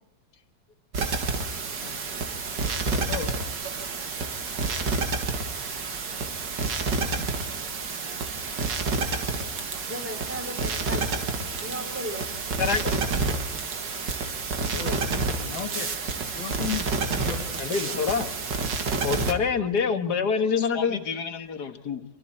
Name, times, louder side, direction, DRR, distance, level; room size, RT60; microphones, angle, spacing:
sound 1, 0.9-19.3, right 4 dB, 70° right, 2.6 m, -29 dB
voice 1, 2.9-3.3 14.7-15.0 15.4-15.9 16.4-17.6, left 8 dB, 85° left, 2.3 m, -35 dB
voice 2, 9.9-12.3 17.9-18.2 18.7-19.2, equal, 5° right, 4.0 m, -38 dB
voice 3, 12.6-12.9 17.2-17.3 17.6-18.3 19.0-22.0, left 6 dB, 60° left, 2.1 m, -26 dB
28.5 x 24.0 x 4.3 m
omnidirectional pair, 2.0 m